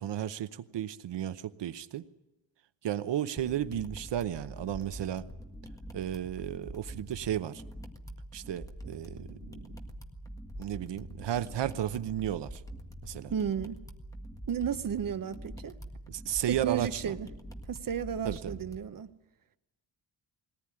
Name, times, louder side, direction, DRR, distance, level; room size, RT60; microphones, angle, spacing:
voice 1, 0.0-2.0 2.8-5.2 5.9-7.6 8.3-9.7 10.6-12.6 13.0-13.3 16.1-17.0 18.2-18.5, right 11 dB, 70° right, 0.9 m, -33 dB
sound 1, 3.4-18.8, equal, 10° left, 1.7 m, -45 dB
voice 2, 13.3-13.8 14.5-15.8 16.5-17.3 17.7-19.1, right 8 dB, 50° right, 1.0 m, -33 dB
21.5 x 18.5 x 9.8 m
wide cardioid pair, 160°, 44 cm